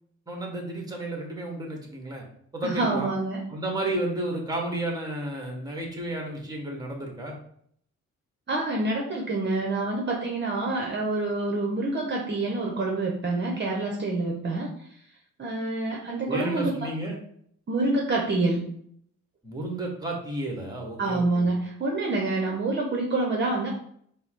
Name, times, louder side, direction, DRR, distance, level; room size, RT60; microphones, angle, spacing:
voice 1, 0.3-2.2 2.5-3.1 3.5-7.3 16.3-17.2 19.4-21.5, right 1 dB, 15° right, 1 dB, 1.3 m, -32 dB
voice 2, 2.6-3.4 8.5-15.0 15.4-16.9 17.7-18.6 21.0-23.7, right 2 dB, 40° right, 0 dB, 0.8 m, -27 dB
5.4 x 2.1 x 4.4 m, 0.66 s
cardioid pair, 90°, 30 cm